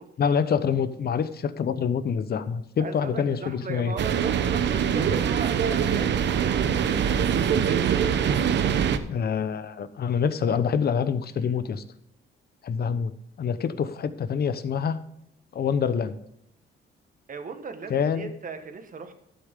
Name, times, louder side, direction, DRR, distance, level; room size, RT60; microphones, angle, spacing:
voice 1, 0.2-3.9 9.1-11.8 12.6-13.1 13.4-15.0 15.5-16.2 17.9-18.3, left 7 dB, 50° left, 12 dB, 1.0 m, -26 dB
voice 2, 2.8-7.9 11.3-11.6 17.3-19.1, right 5 dB, 45° right, 7 dB, 1.7 m, -38 dB
sound 1, 4.0-9.0, right 8 dB, 65° right, 0.9 m, -23 dB
12.5 x 8.2 x 3.8 m, 0.76 s
cardioid pair, 90°, 20 cm